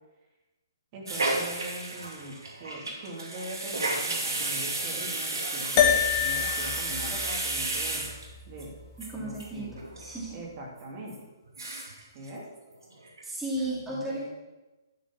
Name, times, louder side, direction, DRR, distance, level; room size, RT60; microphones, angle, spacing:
voice 1, 0.9-8.0 8.5-8.7 9.1-9.8 10.3-11.2 12.1-12.5 13.9-14.2, right 1 dB, 35° right, -2 dB, 2.9 m, -41 dB
sound 1, 1.1-8.6 9.0-9.1 9.4-9.5 9.7-10.1 10.5-10.6 11.1-11.2 11.5-12.0 12.3-12.4 12.7-13.2 13.6-13.7, right 2 dB, 85° right, 2.1 m, -32 dB
sound 2, 5.8-10.3, left 9 dB, 35° left, 1.2 m, -29 dB
voice 2, 9.1-9.7 10.0-10.4 13.2-14.2, right 1 dB, 5° right, -6 dB, 2.2 m, -34 dB
11.5 x 5.0 x 7.2 m, 1.1 s
hypercardioid pair, 140°, 2 cm